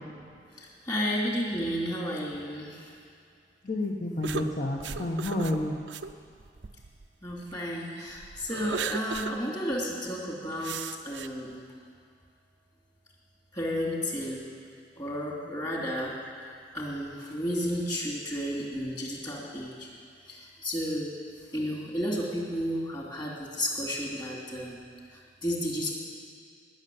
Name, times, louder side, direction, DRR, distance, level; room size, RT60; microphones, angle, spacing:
voice 1, 0.6-2.9 7.2-10.8 11.0-11.6 13.5-14.4 15.0-16.1 16.7-19.9 20.3-21.1 21.5-24.8 25.1-25.9, equal, 25° left, -3 dB, 3.0 m, -32 dB
voice 2, 3.6-5.8, left 1 dB, 45° left, -3 dB, 1.3 m, -30 dB
sound 1, 4.2-7.6 8.0-9.4 9.7-9.8 10.6-11.3, right 6 dB, 90° right, 0.6 m, -37 dB
19.0 x 6.8 x 9.4 m, 2.3 s
head